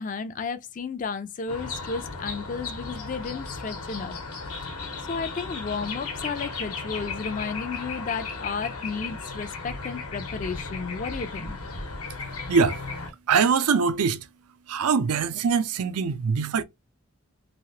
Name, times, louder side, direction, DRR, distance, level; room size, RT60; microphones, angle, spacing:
voice 1, 0.0-4.1 5.0-11.6, left 5 dB, 35° left, 0.3 m, -33 dB
sound 1, 1.5-13.1, left 4 dB, 85° left, 0.9 m, -35 dB
voice 2, 13.3-14.2 14.7-16.6, right 5 dB, 85° right, 0.5 m, -23 dB
3.0 x 2.8 x 2.8 m
head